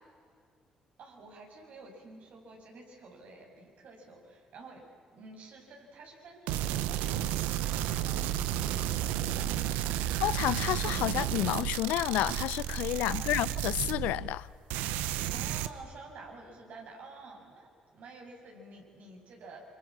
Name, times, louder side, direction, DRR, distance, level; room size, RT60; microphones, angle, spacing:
voice 1, 1.0-4.8 5.1-10.0 13.1-13.2 15.3-19.6, right 3 dB, 65° right, 7.1 m, -50 dB
sound 1, 6.5-14.4 14.7-15.7, right 11 dB, 85° right, 0.9 m, -32 dB
voice 2, 10.2-14.5, left 16 dB, 80° left, 0.6 m, -30 dB
27.5 x 25.0 x 7.5 m
supercardioid pair, 55°, 3 cm